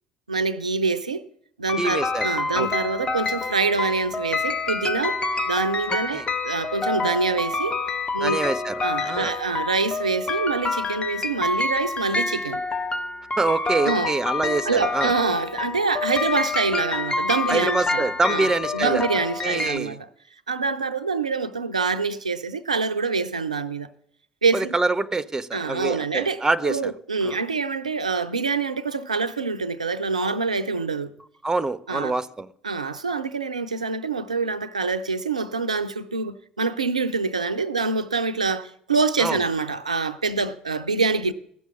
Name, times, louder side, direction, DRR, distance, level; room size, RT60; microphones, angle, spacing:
voice 1, 0.3-1.2 1.6-5.2 5.5-7.8 8.1-8.4 8.8-12.6 13.8-14.1 14.6-20.1 20.5-23.9 24.4-24.7 25.5-31.1 31.9-32.1 32.6-41.3, right 4 dB, 85° right, 0.4 m, -25 dB
sound 1, 1.7-19.8, left 3 dB, 25° left, 0.9 m, -27 dB
voice 2, 1.8-2.7 6.1-6.3 8.2-8.7 9.0-9.3 13.4-15.1 17.5-19.1 19.4-20.0 24.5-26.9 27.2-27.4 31.4-32.5 39.2-39.4, right 3 dB, 15° right, 0.6 m, -25 dB
15.5 x 6.1 x 6.8 m
figure-of-eight pair, 55°, 4 cm